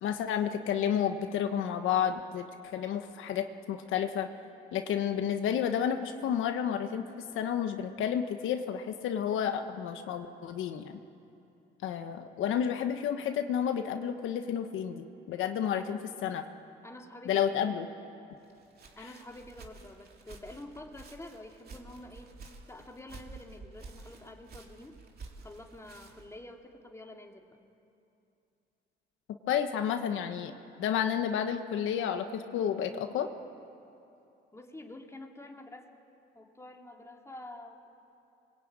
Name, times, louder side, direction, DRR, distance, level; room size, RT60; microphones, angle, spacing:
voice 1, 0.0-4.3 4.7-7.0 7.3-11.0 11.8-16.4 17.3-17.9 29.5-33.3, left 8 dB, 85° left, 6 dB, 1.3 m, -31 dB
voice 2, 16.8-17.5 18.9-22.4 22.7-25.0 25.4-27.6 34.5-35.9 36.3-37.8, left 1 dB, 15° left, 2 dB, 2.8 m, -48 dB
Walk footsteps, 18.4-26.4, right 3 dB, 50° right, 3.1 m, -51 dB
26.5 x 22.0 x 9.0 m, 2.7 s
cardioid pair, 90°, 20 cm